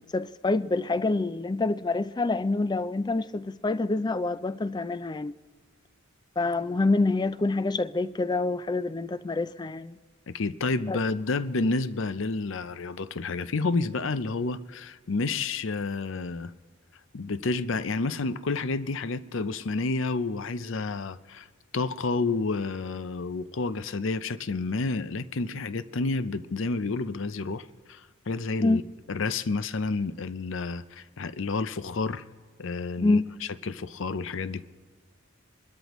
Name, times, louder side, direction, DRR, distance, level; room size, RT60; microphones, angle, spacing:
voice 1, 0.0-5.4 6.4-9.9 10.9-11.0 28.6-28.8 33.0-33.2, left 2 dB, 20° left, 0.4 m, -26 dB
voice 2, 10.3-16.5 17.1-21.5 21.7-28.8 29.1-32.2 32.6-33.2 33.6-34.6, left 3 dB, 60° left, 0.6 m, -30 dB
25.5 x 13.0 x 3.1 m
head